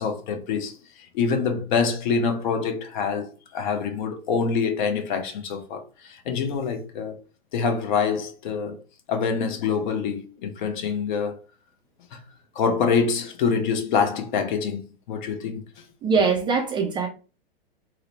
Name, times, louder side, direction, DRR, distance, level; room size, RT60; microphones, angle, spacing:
voice 1, 0.0-7.1 7.5-8.8 9.1-11.4 12.1-12.2 12.5-15.8, left 5 dB, 50° left, 0.9 m, -26 dB
voice 2, 16.0-17.1, right 5 dB, 15° right, 0.4 m, -22 dB
3.0 x 2.0 x 4.1 m
hypercardioid pair, 110°, 31 cm